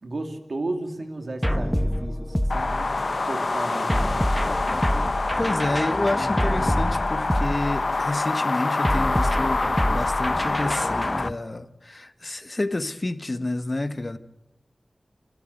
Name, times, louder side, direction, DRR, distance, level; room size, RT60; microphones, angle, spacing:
voice 1, 0.0-4.3, right 2 dB, 70° right, 6 dB, 2.9 m, -34 dB
sound 1, 1.4-3.2 3.9-8.1 8.8-11.3, equal, ahead, 1.1 m, -26 dB
sound 2, 2.5-11.3, left 3 dB, 60° left, 0.9 m, -26 dB
voice 2, 5.4-14.2, left 2 dB, 45° left, 12 dB, 1.3 m, -29 dB
29.0 x 13.0 x 7.9 m, 0.98 s
wide cardioid pair, 50°, 0 cm